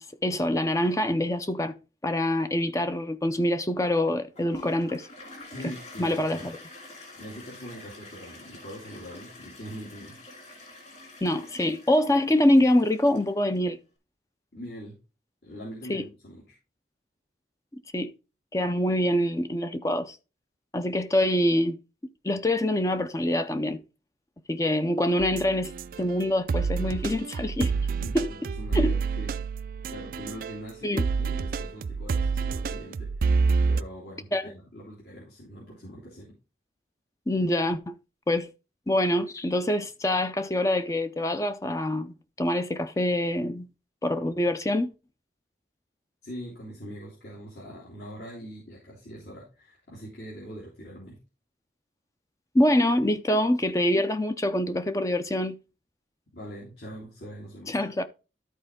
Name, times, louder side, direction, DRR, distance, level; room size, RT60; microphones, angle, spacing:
voice 1, 0.0-1.7 2.0-5.1 6.0-6.6 11.2-13.8 15.9-16.0 17.9-18.1 18.5-20.2 20.7-21.8 22.2-23.8 24.5-25.7 26.0-27.7 28.1-28.3 28.7-28.9 30.8-31.1 34.3-34.5 37.3-37.9 38.3-38.5 38.9-43.7 44.0-44.9 52.5-55.6 57.7-58.0, left 1 dB, 15° left, 0.5 m, -25 dB
Toilet flush, 4.4-13.6, left 1 dB, 40° left, 2.6 m, -46 dB
voice 2, 5.5-6.4 7.1-10.2 14.5-15.0 15.4-16.6 28.0-29.3 29.9-36.3 46.2-51.2 56.3-57.8, equal, 65° left, 2.9 m, -43 dB
sound 1, 25.2-30.7 31.0-33.8, right 4 dB, 50° right, 0.3 m, -28 dB
13.0 x 4.3 x 3.7 m
head